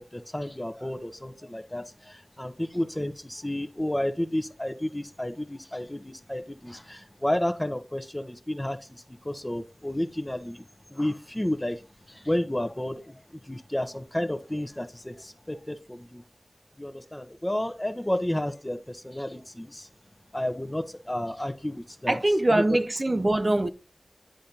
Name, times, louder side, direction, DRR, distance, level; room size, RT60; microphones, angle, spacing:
voice 1, 0.0-10.6 10.9-11.8 12.1-13.2 13.5-16.2 16.8-19.9 20.3-22.2 22.5-22.6, left 1 dB, 20° left, 1.0 m, -31 dB
voice 2, 22.1-23.7, right 1 dB, 40° right, 0.6 m, -23 dB
10.0 x 4.3 x 4.0 m
wide cardioid pair, 50°, 0 cm